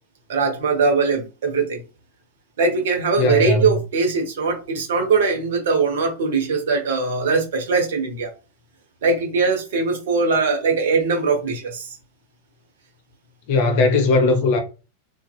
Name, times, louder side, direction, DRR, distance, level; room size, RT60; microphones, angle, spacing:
voice 1, 0.3-1.8 2.6-8.3 9.0-12.0, right 4 dB, 60° right, 0.8 m, -21 dB
voice 2, 3.2-3.7 13.5-14.6, left 3 dB, 50° left, 0.7 m, -18 dB
2.6 x 2.4 x 2.3 m
figure-of-eight pair, 90°, 0 cm